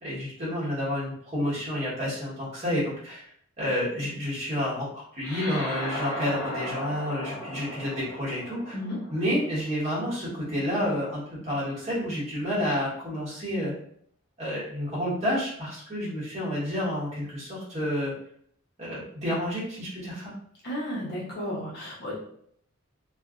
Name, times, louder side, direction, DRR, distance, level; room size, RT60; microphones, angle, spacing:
voice 1, 0.0-3.2 3.6-8.8 9.1-13.7 14.4-18.1 18.8-20.3, equal, 35° right, -8 dB, 1.3 m, -30 dB
sound 1, 5.2-10.0, left 1 dB, 15° left, 0.9 m, -36 dB
voice 2, 20.6-22.2, equal, 50° left, -6 dB, 1.0 m, -33 dB
2.5 x 2.4 x 2.4 m, 0.65 s
head